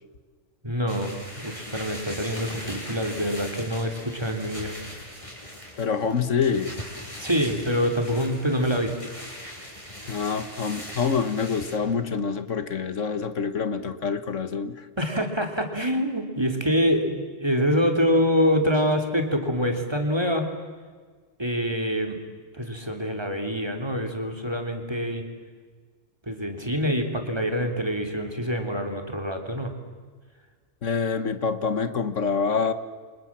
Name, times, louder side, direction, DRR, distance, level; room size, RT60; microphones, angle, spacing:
voice 1, 0.6-4.7 7.2-9.0 9.3-9.5 15.0-20.5 21.4-22.2 22.5-25.2 26.3-29.7, equal, 20° right, 4 dB, 3.4 m, -25 dB
sound 1, 0.9-11.8, equal, 25° left, 6.3 m, -40 dB
voice 2, 5.8-6.7 10.1-14.9 30.8-32.7, left 5 dB, 75° left, 11 dB, 1.7 m, -26 dB
29.5 x 26.0 x 7.5 m, 1.5 s
omnidirectional pair, 1.3 m